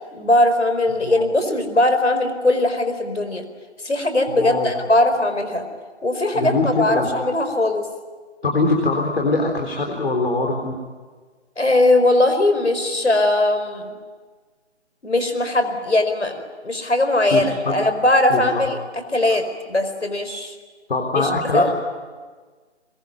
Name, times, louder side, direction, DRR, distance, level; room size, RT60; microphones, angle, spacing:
voice 1, 0.1-3.4 3.8-5.6 6.0-7.9 11.6-14.0 15.0-18.8 19.1-20.5 21.1-21.7, left 2 dB, 80° left, 8 dB, 4.8 m, -20 dB
voice 2, 4.3-4.7 6.3-7.1 8.4-10.7 17.3-17.8 18.3-18.6 20.9-21.7, left 3 dB, 55° left, 1 dB, 4.0 m, -22 dB
23.0 x 22.0 x 9.4 m, 1.4 s
figure-of-eight pair, 155°, 35 cm